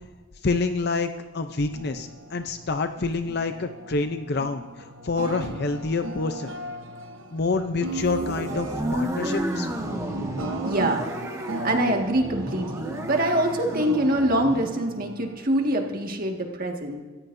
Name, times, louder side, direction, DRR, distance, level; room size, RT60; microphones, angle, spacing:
voice 1, 0.4-6.5 7.3-9.7, left 3 dB, 50° left, 7 dB, 0.7 m, -27 dB
sound 1, 1.5-16.2, right 2 dB, 75° right, 1.2 m, -37 dB
sound 2, 8.0-14.8, equal, 15° right, 1.4 m, -32 dB
voice 2, 10.7-11.0 11.4-17.0, right 1 dB, 45° right, 2 dB, 1.9 m, -24 dB
26.0 x 14.5 x 2.7 m, 1.4 s
head